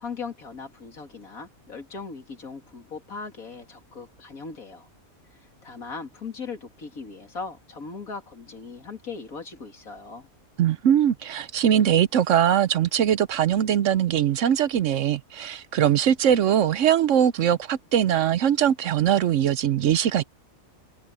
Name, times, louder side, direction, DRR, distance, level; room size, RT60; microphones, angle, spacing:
voice 1, 0.0-4.9 5.4-10.3, left 4 dB, 75° left, 3.2 m, -39 dB
voice 2, 10.6-20.2, right 9 dB, 65° right, 0.9 m, -21 dB
omnidirectional pair, 1.5 m